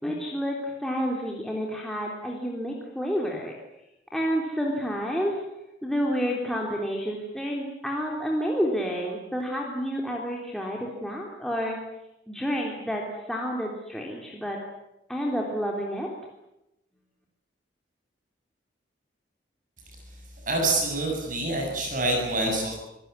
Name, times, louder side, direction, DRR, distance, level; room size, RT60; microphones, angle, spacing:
voice 1, 0.0-3.5 4.1-5.4 5.8-11.8 12.3-13.0 13.3-14.6 15.1-16.1, equal, ahead, -2 dB, 3.5 m, -29 dB
voice 2, 20.5-22.8, right 2 dB, 45° right, 1 dB, 7.7 m, -26 dB
27.0 x 17.0 x 9.8 m, 0.89 s
head